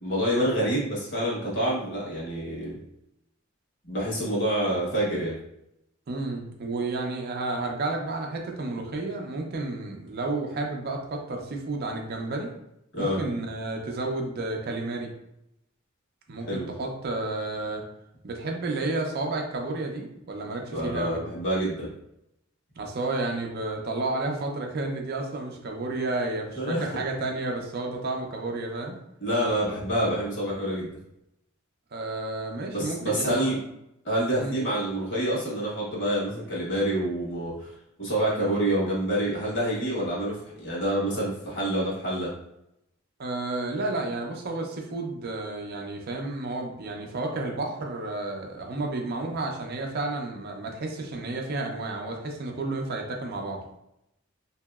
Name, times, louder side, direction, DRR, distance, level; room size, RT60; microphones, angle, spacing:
voice 1, 0.0-2.8 3.8-5.3 12.9-13.2 16.4-16.7 20.7-21.9 26.6-26.9 29.2-30.9 32.7-33.5 34.0-37.7 38.0-42.3, right 1 dB, 60° left, -5 dB, 1.2 m, -27 dB
voice 2, 6.1-12.5 13.0-15.1 16.3-17.8 18.2-21.2 22.8-29.0 31.9-33.4 34.4-34.5 43.2-53.6, right 2 dB, 50° right, 2 dB, 0.5 m, -31 dB
2.9 x 2.7 x 2.3 m, 0.82 s
head